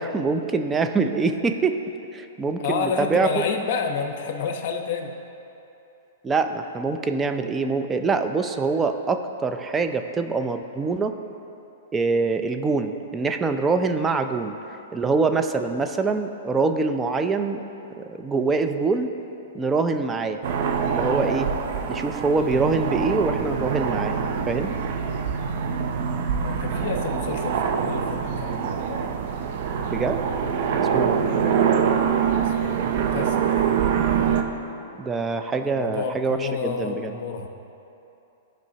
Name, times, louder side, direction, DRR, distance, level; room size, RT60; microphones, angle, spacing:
voice 1, 0.0-1.8 2.1-3.4 6.2-11.1 11.9-14.5 14.9-17.6 18.0-19.1 19.5-20.4 20.8-21.5 21.9-24.1 24.5-24.7 29.9-30.2 30.8-31.1 35.0-37.1, right 4 dB, 15° right, 7 dB, 0.5 m, -24 dB
voice 2, 2.6-5.1 21.0-21.2 26.4-29.1 30.8-31.1 32.4-33.8 35.6-37.5, left 5 dB, 55° left, 4 dB, 0.9 m, -30 dB
sound 1, 20.4-34.4, right 7 dB, 55° right, 0.7 m, -24 dB
15.0 x 5.1 x 2.8 m, 2.9 s
hypercardioid pair, 125°, 0 cm